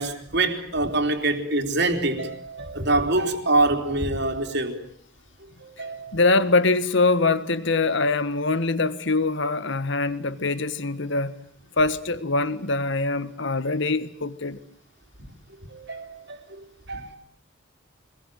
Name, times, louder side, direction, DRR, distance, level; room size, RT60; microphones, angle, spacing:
voice 1, 0.0-4.8 5.6-6.1 15.2-15.3 15.7-16.6 16.9-17.2, right 2 dB, 55° right, 3.5 m, -25 dB
voice 2, 6.1-11.4 11.8-14.6, left 3 dB, 60° left, 1.5 m, -23 dB
25.5 x 21.0 x 9.2 m
head